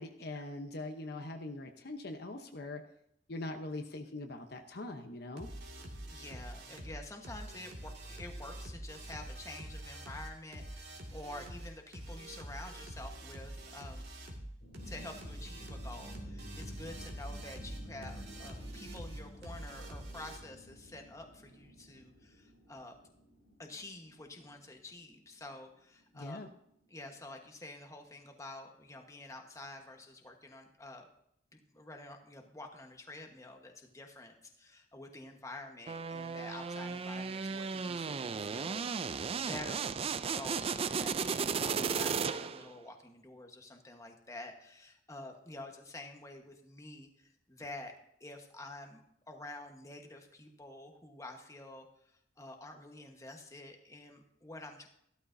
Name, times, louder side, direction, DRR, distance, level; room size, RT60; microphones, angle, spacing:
voice 1, 0.0-2.8 3.3-5.5 26.1-26.5, left 2 dB, 60° left, 5 dB, 0.9 m, -42 dB
sound 1, 5.4-20.4, right 1 dB, 60° right, 2.1 m, -46 dB
voice 2, 6.1-14.1 14.8-23.0 23.6-26.4 26.9-31.1 31.5-47.9 48.2-51.9 52.4-54.9, left 2 dB, 15° left, 3 dB, 1.2 m, -48 dB
sound 2, 14.6-27.4, equal, 85° left, 3.1 m, -51 dB
sound 3, 35.9-42.7, right 5 dB, 30° right, 0.3 m, -35 dB
14.5 x 12.5 x 2.7 m, 0.75 s
head